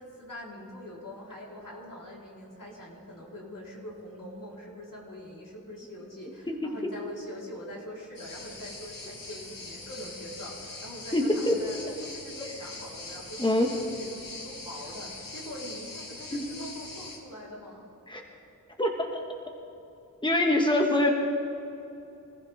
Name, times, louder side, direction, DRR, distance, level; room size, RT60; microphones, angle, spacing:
voice 1, 0.0-17.9, equal, 75° left, -5 dB, 4.7 m, -43 dB
sound 1, 8.2-17.2, left 3 dB, 90° left, 2.2 m, -42 dB
voice 2, 11.1-11.7 13.4-13.7 16.3-16.4 18.1-18.2 18.8-19.2 20.2-21.1, left 1 dB, 15° left, 1 dB, 1.7 m, -24 dB
25.5 x 15.0 x 3.7 m, 2.9 s
wide cardioid pair, 55°, 33 cm